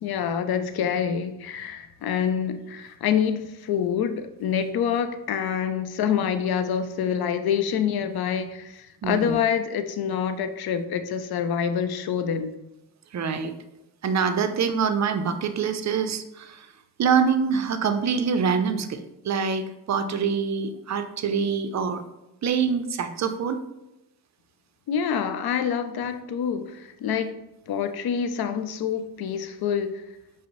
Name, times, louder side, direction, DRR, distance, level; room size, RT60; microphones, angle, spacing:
voice 1, 0.0-12.5 24.9-27.4 27.7-29.9, left 8 dB, 65° left, 9 dB, 0.5 m, -26 dB
voice 2, 9.0-9.4 13.1-13.5 14.0-16.7 17.0-22.0 22.4-23.6, right 6 dB, 45° right, 9 dB, 0.4 m, -25 dB
5.0 x 2.0 x 3.0 m, 0.92 s
supercardioid pair, 55°, 41 cm